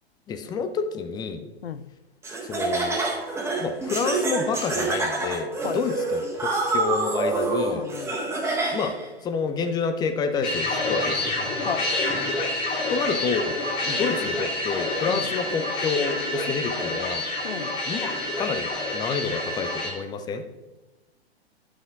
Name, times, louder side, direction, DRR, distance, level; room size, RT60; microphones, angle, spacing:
voice 1, 0.3-1.4 2.5-3.0 3.6-7.8 8.7-9.0 9.2-11.3 12.9-13.6 13.8-17.3 17.9-18.1 18.4-20.4, left 5 dB, 15° left, 0.5 m, -28 dB
Laughter, 2.2-9.1, right 2 dB, 10° right, 1.5 m, -27 dB
voice 2, 7.7-8.2 11.6-11.9 15.1-15.3 17.4-17.8, left 8 dB, 70° left, 0.6 m, -33 dB
sound 1, 10.4-19.9, left 2 dB, 30° left, 2.3 m, -28 dB
11.0 x 6.2 x 4.0 m
figure-of-eight pair, 105°, 32 cm